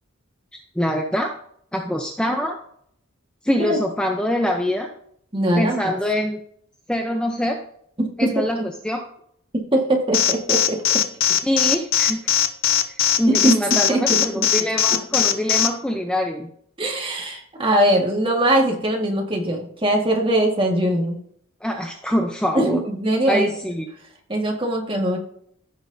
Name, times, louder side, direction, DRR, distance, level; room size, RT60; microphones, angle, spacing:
voice 1, 0.8-1.4 1.7-2.6 3.4-4.9 5.6-6.4 6.9-7.6 8.2-9.0 11.4-12.2 12.9-16.5 21.6-22.8 23.3-23.9, equal, 5° left, 2 dB, 0.6 m, -24 dB
voice 2, 5.3-5.9 8.0-8.3 9.7-10.8 13.3-13.6 13.9-14.5 16.8-21.2 22.6-23.5 24.3-25.2, right 1 dB, 25° right, 0 dB, 1.7 m, -21 dB
Alarm, 10.1-15.7, left 10 dB, 75° left, 0.7 m, -18 dB
15.0 x 6.2 x 2.7 m, 0.66 s
head